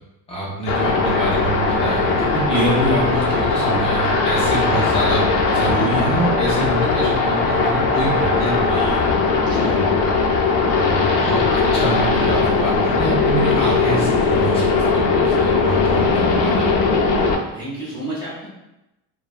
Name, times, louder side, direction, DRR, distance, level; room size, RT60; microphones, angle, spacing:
voice 1, 0.3-9.1 9.6-9.8 10.8-10.9 11.2-14.9 15.1-16.9, right 1 dB, 15° left, -6 dB, 0.5 m, -25 dB
sound 1, 0.7-17.3, left 4 dB, 70° left, 0.5 m, -19 dB
voice 2, 9.4-9.9 15.9-16.1 17.5-18.5, right 1 dB, 10° right, -10 dB, 0.8 m, -32 dB
3.1 x 2.2 x 2.3 m, 0.94 s
cardioid pair, 175°, 38 cm